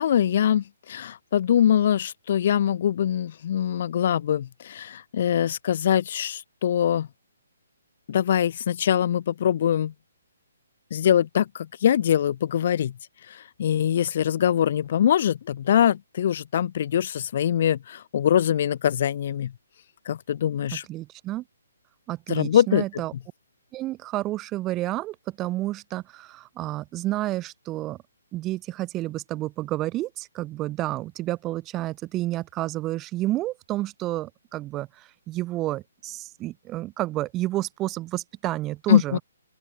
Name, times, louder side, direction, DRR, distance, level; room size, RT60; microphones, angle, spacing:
voice 1, 0.0-7.1 8.1-9.9 10.9-12.9 13.6-19.5 20.1-20.8 22.3-22.8 38.9-39.2, left 10 dB, 50° left, 0.8 m, -23 dB
voice 2, 20.9-21.4 22.1-23.1 23.7-28.0 28.3-39.2, right 16 dB, 20° right, 5.7 m, -30 dB
open air
figure-of-eight pair, 135°, 0 cm